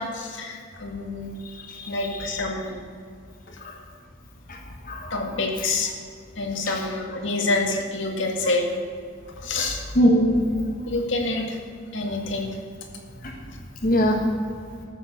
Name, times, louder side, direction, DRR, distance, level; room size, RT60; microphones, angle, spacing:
voice 1, 0.0-1.3 1.9-2.8 5.1-5.9 6.4-8.7 9.4-9.8 10.9-11.6 11.9-12.6, left 2 dB, 75° left, 2 dB, 2.0 m, -27 dB
voice 2, 1.5-2.3 3.6-3.7 4.5-4.6 4.9-5.2 6.7-6.8 9.6-9.7 9.9-10.5 13.8-14.2, equal, 45° left, 0 dB, 1.3 m, -22 dB
14.5 x 7.2 x 6.9 m, 2.2 s
head